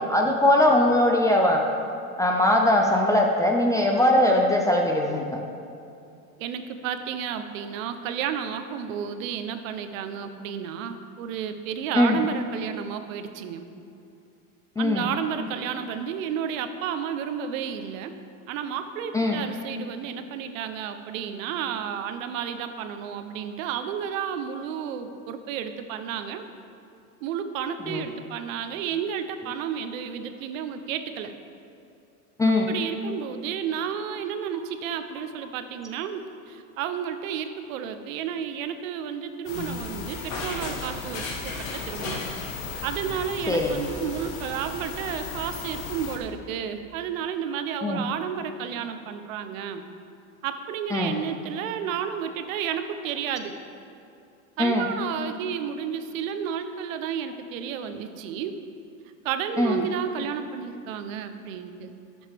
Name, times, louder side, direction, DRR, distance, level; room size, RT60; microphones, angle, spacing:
voice 1, 0.0-1.6 2.2-5.2 11.9-12.2 14.8-15.1 19.1-19.4 27.8-28.1 32.4-32.7 43.5-43.8 47.8-48.0 50.9-51.1 54.6-54.9 59.6-59.8, left 1 dB, 10° left, 0 dB, 0.4 m, -21 dB
voice 2, 6.4-13.7 14.8-18.1 18.5-26.5 27.2-31.3 32.7-42.2 42.8-49.8 50.4-53.5 54.6-58.6 59.2-61.9, right 8 dB, 70° right, 9 dB, 0.9 m, -32 dB
sound 1, 39.5-46.2, left 3 dB, 70° left, 2.0 m, -35 dB
14.0 x 7.3 x 3.5 m, 2.6 s
supercardioid pair, 130°, 42 cm